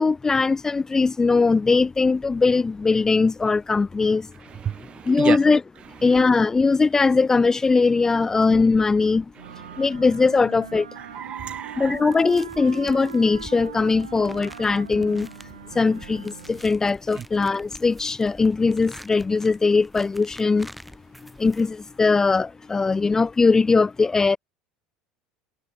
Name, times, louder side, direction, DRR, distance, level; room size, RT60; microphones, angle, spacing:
voice 1, 0.0-4.2 5.1-5.6 6.0-9.2 9.8-10.8 11.8-15.3 15.8-20.7 21.4-24.4, left 4 dB, 20° left, 0.7 m, -20 dB
voice 2, 4.3-5.4 5.8-6.2 9.3-9.9 11.0-12.1 15.7-15.8 17.1-17.3, right 9 dB, 35° right, 1.4 m, -32 dB
sound 1, 9.4-16.7, right 8 dB, 80° right, 3.8 m, -41 dB
sound 2, 11.8-22.0, equal, ahead, 3.1 m, -47 dB
figure-of-eight pair, 70°, 3 cm